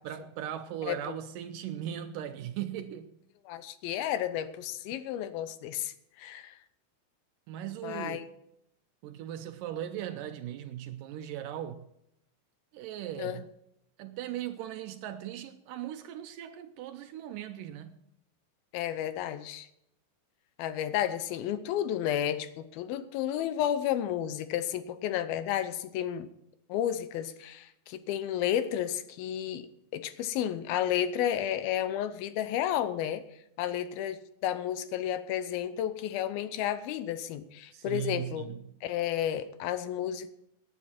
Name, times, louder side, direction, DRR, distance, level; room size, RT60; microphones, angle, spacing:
voice 1, 0.0-3.2 7.5-8.2 9.0-11.9 12.7-13.4 14.0-18.0 37.7-38.7, right 11 dB, 80° right, 2.0 m, -38 dB
voice 2, 3.5-6.6 7.8-8.3 13.2-13.4 18.7-19.7 20.6-26.3 26.7-29.7 29.9-33.2 33.6-38.5 38.8-40.3, left 10 dB, 80° left, 2.6 m, -32 dB
18.0 x 9.6 x 4.4 m
omnidirectional pair, 4.4 m